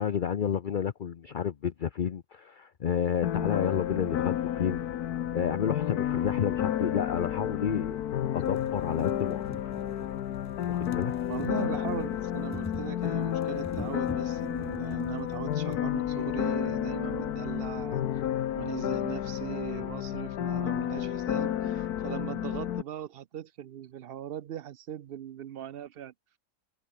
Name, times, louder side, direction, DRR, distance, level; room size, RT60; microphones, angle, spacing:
voice 1, 0.0-4.8 5.3-8.0 8.3-9.6 10.7-11.1, left 8 dB, 50° left, 0.6 m, -30 dB
sound 1, 3.2-22.8, left 11 dB, 80° left, 1.4 m, -31 dB
sound 2, 6.3-6.4 7.4-7.5 7.9-8.0 8.3-15.9 16.8-16.9 17.1-17.2, left 1 dB, 10° left, 2.4 m, -45 dB
voice 2, 11.3-18.2 18.6-26.1, right 10 dB, 70° right, 0.5 m, -39 dB
omnidirectional pair, 1.7 m